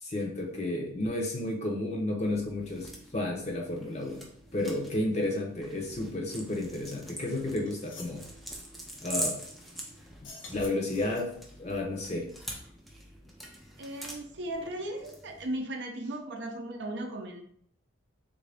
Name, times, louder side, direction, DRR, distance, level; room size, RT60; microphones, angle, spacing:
voice 1, 0.0-8.2 9.0-9.4 10.2-12.3, left 1 dB, 35° left, 0 dB, 0.7 m, -32 dB
sound 1, 2.2-15.6, equal, ahead, 0.4 m, -43 dB
sound 2, 7.3-7.4 7.6-8.2 10.1-11.5, left 3 dB, 70° left, 0.7 m, -48 dB
voice 2, 13.8-17.4, right 1 dB, 60° right, 4 dB, 0.5 m, -36 dB
3.6 x 2.6 x 3.4 m, 0.64 s
head